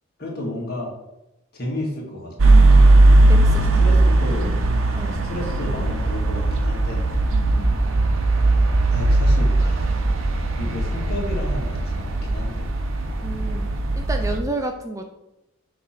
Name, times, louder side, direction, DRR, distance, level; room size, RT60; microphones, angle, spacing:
voice 1, 0.2-0.9 1.5-2.6 3.5-4.6 5.0-7.1 8.9-9.9 10.6-12.7, left 1 dB, 50° left, -2 dB, 1.9 m, -32 dB
sound 1, 2.4-14.4, right 2 dB, 85° right, 0.8 m, -18 dB
voice 2, 3.3-3.6 4.9-5.2 7.3-7.8 13.2-13.7 14.0-15.0, right 2 dB, 15° right, 5 dB, 0.4 m, -30 dB
6.9 x 3.1 x 5.8 m, 0.93 s
head